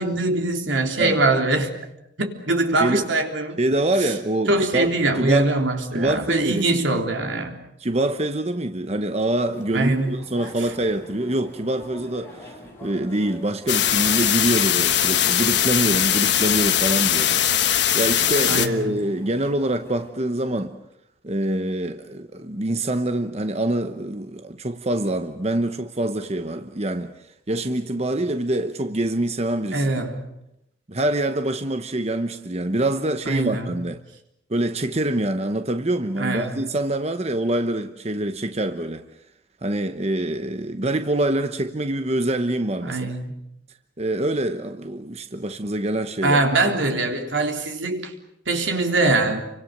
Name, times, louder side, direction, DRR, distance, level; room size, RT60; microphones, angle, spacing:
voice 1, 0.0-1.7 2.2-3.6 4.0-4.1 4.5-7.6 9.7-10.2 18.5-19.0 29.7-30.3 33.3-33.7 36.2-36.6 42.8-43.3 46.2-48.1 48.5-49.4, right 2 dB, 85° right, 3.5 m, -22 dB
voice 2, 3.6-5.5 5.9-7.0 7.8-12.5 12.8-20.8 21.2-27.1 27.5-29.9 30.9-34.0 34.5-39.1 39.6-43.1 44.0-46.5, right 1 dB, 35° right, 1.0 m, -25 dB
sound 1, 9.5-20.1, equal, 15° left, 7.3 m, -45 dB
sound 2, 13.7-18.7, left 10 dB, 60° left, 1.4 m, -20 dB
29.5 x 24.5 x 6.7 m
head